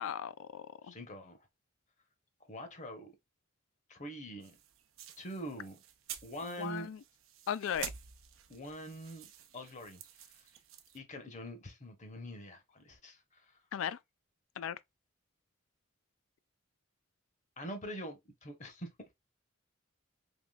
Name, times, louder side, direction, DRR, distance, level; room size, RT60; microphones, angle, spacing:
voice 1, 0.0-0.9 6.4-7.0 7.5-7.9 13.7-14.0 14.6-14.8, left 9 dB, 75° left, 0.3 m, -37 dB
voice 2, 0.8-1.4 2.5-3.1 3.9-4.6 5.2-5.8 6.2-6.9 8.5-9.3 9.5-10.4 10.9-13.6 17.6-18.9, equal, 35° left, 0.9 m, -44 dB
sound 1, 4.4-11.0, right 9 dB, 75° right, 0.6 m, -49 dB
3.6 x 3.0 x 2.3 m
head